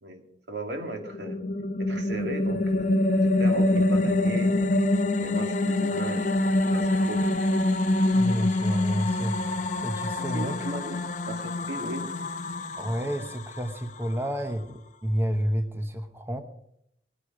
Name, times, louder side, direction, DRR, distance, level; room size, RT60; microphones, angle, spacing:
voice 1, 0.0-1.4 1.8-4.5 5.2-7.2 10.2-12.1, right 1 dB, 80° right, 4 dB, 2.2 m, -37 dB
sound 1, 0.9-14.3, left 1 dB, 45° left, 0.9 m, -25 dB
voice 2, 8.1-9.4 9.8-10.6 12.8-16.4, equal, 15° right, 7 dB, 1.0 m, -30 dB
20.0 x 9.9 x 5.0 m, 0.75 s
head